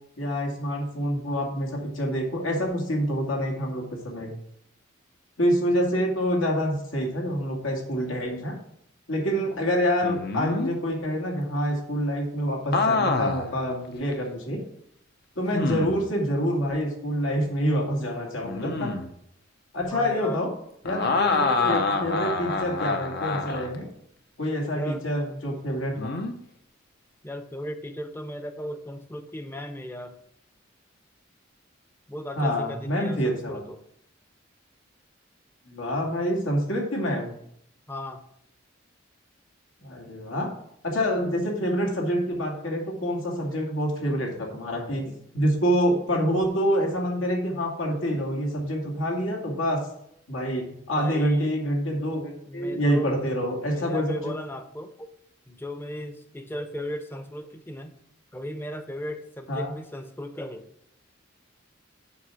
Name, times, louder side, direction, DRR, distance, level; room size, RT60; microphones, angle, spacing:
voice 1, 0.2-4.3 5.4-8.6 9.1-14.6 15.4-18.9 19.7-20.5 20.8-23.9 24.4-26.2 32.4-33.6 35.7-37.3 39.8-40.5 40.8-49.8 50.3-54.1 59.5-59.7, equal, 80° left, 0 dB, 2.4 m, -27 dB
sound 1, 10.0-10.7 12.7-13.5 14.1-14.2 15.5-16.1 18.4-19.1 20.8-23.8 26.0-26.3, left 3 dB, 55° left, 0.8 m, -26 dB
voice 2, 19.9-20.4 21.0-21.8 24.7-25.0 27.2-30.2 32.1-33.8 37.9-38.2 43.5-43.7 51.0-51.5 52.5-53.1 53.7-55.1 55.5-58.0 58.3-60.7, equal, 10° left, 8 dB, 0.7 m, -36 dB
7.1 x 5.8 x 6.2 m, 0.73 s
head